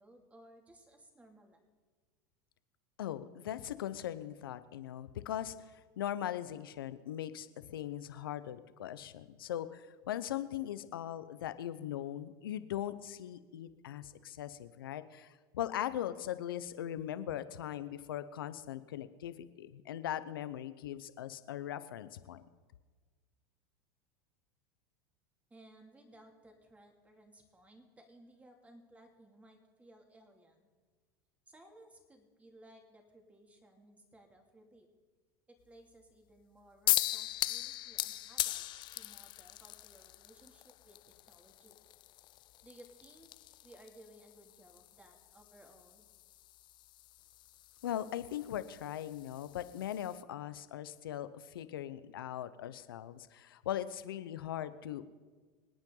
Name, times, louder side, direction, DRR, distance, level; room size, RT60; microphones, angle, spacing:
voice 1, 0.0-1.6 25.5-30.7 31.5-34.9 35.5-41.0 41.3-41.8 42.6-43.3 43.6-46.1, right 1 dB, 10° right, 3 dB, 2.6 m, -59 dB
voice 2, 3.0-5.5 6.0-22.4 47.8-55.0, left 11 dB, 90° left, 13 dB, 0.9 m, -40 dB
sound 1, 36.9-50.2, left 15 dB, 40° left, 0.4 m, -40 dB
26.0 x 9.0 x 3.9 m, 1.4 s
supercardioid pair, 110°, 11 cm